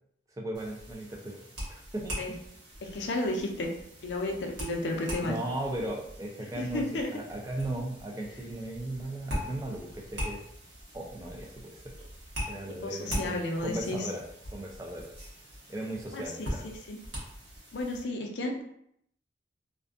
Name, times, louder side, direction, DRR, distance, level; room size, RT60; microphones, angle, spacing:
voice 1, 0.4-1.4 1.7-2.4 5.2-10.4 10.9-11.8 12.5-14.2 14.5-15.1 15.7-16.6, right 1 dB, 20° right, -1 dB, 0.4 m, -37 dB
sound 1, 0.5-18.0, equal, 85° right, 1.0 m, -41 dB
voice 2, 2.8-3.7 4.0-5.4 6.6-7.1 12.8-14.0 16.1-16.2 16.6-17.0 17.7-18.6, left 2 dB, 75° left, 2 dB, 0.5 m, -32 dB
2.5 x 2.2 x 2.4 m, 0.72 s
head